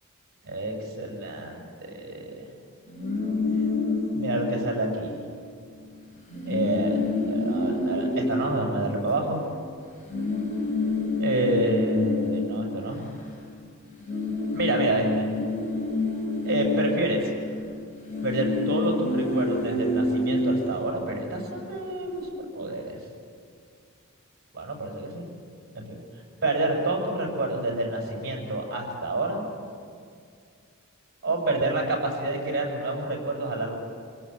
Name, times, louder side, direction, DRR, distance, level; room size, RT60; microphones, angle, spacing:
voice 1, 0.4-2.5 4.1-5.1 6.5-9.4 11.2-13.0 14.5-15.3 16.4-17.2 18.2-23.0 24.5-25.3 25.7-26.0 26.4-29.4 31.2-33.8, right 2 dB, 50° right, 0 dB, 6.9 m, -28 dB
sound 1, 2.9-5.4 5.7-5.9 6.2-9.6 10.1-13.7 13.9-21.5, left 2 dB, 35° left, 4.1 m, -28 dB
26.5 x 17.5 x 8.3 m, 2.2 s
head